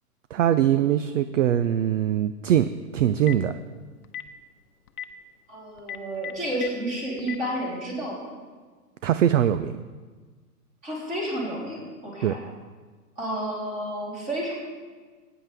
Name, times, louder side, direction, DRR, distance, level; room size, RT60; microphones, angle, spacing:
voice 1, 0.3-2.7 2.9-3.5 9.0-9.8 12.2-12.3, right 10 dB, 55° right, 11 dB, 0.5 m, -22 dB
Telephone, 3.0-3.5 4.0-4.3 4.9-5.0 5.8-6.7 7.2-7.4, left 10 dB, 65° left, 0.9 m, -34 dB
voice 2, 5.5-8.3 10.8-12.4 13.2-14.5, right 1 dB, 15° right, -5 dB, 3.4 m, -31 dB
17.5 x 9.4 x 3.4 m, 1.4 s
hypercardioid pair, 155°, 47 cm